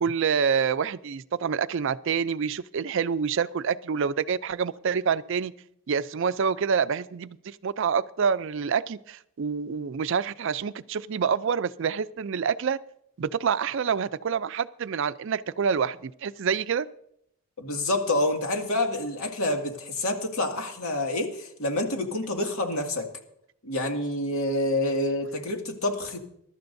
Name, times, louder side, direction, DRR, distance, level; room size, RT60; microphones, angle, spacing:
voice 1, 0.0-5.5 5.9-12.8 13.2-16.9, right 6 dB, 60° right, 0.4 m, -27 dB
voice 2, 17.6-23.1 23.6-26.2, left 1 dB, 75° left, 2.1 m, -27 dB
22.5 x 12.0 x 2.7 m
head